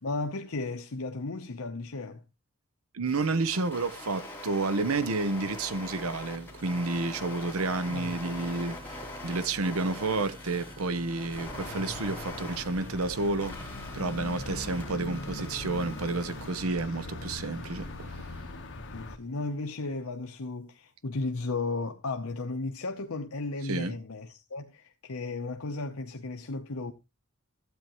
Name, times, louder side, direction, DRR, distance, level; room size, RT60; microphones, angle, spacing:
voice 1, 0.0-2.2 7.9-8.2 18.9-26.9, left 3 dB, 75° left, 0.8 m, -35 dB
voice 2, 2.9-18.4 23.6-24.0, right 3 dB, 75° right, 0.8 m, -30 dB
sound 1, 3.0-16.5, left 2 dB, 10° left, 3.0 m, -43 dB
sound 2, 11.3-19.2, left 2 dB, 60° left, 1.3 m, -41 dB
13.0 x 8.9 x 3.0 m
head